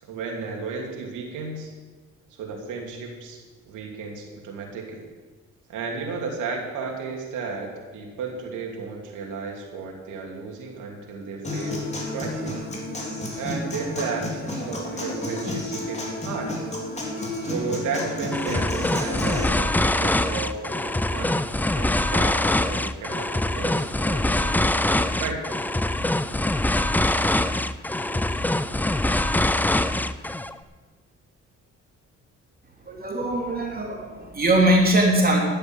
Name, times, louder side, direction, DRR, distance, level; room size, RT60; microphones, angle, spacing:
voice 1, 0.0-1.7 2.3-5.0 5.7-12.6 13.3-16.5 17.4-21.4 21.7-25.4, right 4 dB, 90° right, 1 dB, 2.8 m, -33 dB
Human voice / Acoustic guitar, 11.4-19.4, left 1 dB, 20° left, 3.2 m, -31 dB
sound 1, 18.3-30.5, left 1 dB, 5° left, 0.5 m, -24 dB
voice 2, 32.8-35.4, right 1 dB, 30° right, -1 dB, 3.2 m, -21 dB
12.0 x 8.2 x 7.9 m, 1.4 s
cardioid pair, 90°, 30 cm